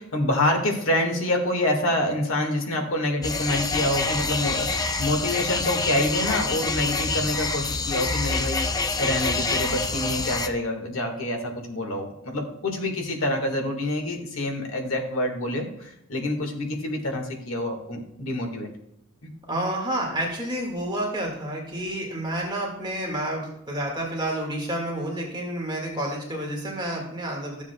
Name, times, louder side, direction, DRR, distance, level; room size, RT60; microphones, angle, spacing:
voice 1, 0.0-8.7 9.0-18.7, left 1 dB, 70° left, 3 dB, 1.7 m, -27 dB
sound 1, 3.2-10.5, left 3 dB, 20° left, 0.5 m, -26 dB
voice 2, 19.5-27.6, right 1 dB, 20° right, -1 dB, 1.8 m, -29 dB
14.0 x 7.2 x 2.3 m, 0.81 s
head